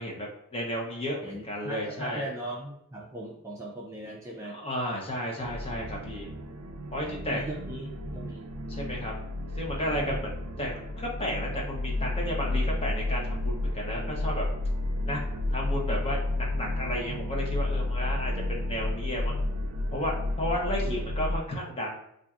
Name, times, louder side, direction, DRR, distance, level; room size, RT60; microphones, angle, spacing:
voice 1, 0.0-2.3 4.4-6.3 6.9-7.4 8.7-9.1 9.5-14.4 15.0-15.2 15.5-19.4 19.9-22.0, equal, 25° left, -2 dB, 0.8 m, -33 dB
voice 2, 1.2-4.6 7.3-8.5 9.9-10.2 20.8-21.1, right 1 dB, 15° right, -3 dB, 0.4 m, -38 dB
sound 1, 5.4-21.4, left 2 dB, 90° right, 0.4 m, -31 dB
5.5 x 2.5 x 2.4 m, 0.76 s
head